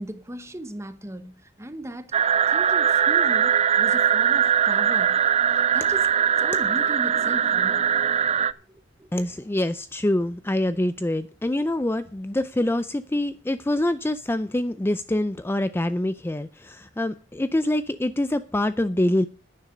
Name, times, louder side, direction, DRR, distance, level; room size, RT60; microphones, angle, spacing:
voice 1, 0.0-2.1 2.5-5.2 5.5-6.1 6.4-7.8 8.7-9.1, right 1 dB, 15° right, 1.2 m, -37 dB
sound 1, 2.1-8.5, right 8 dB, 35° right, 0.6 m, -21 dB
voice 2, 9.1-19.3, left 1 dB, 10° left, 0.4 m, -25 dB
11.5 x 9.8 x 5.2 m
head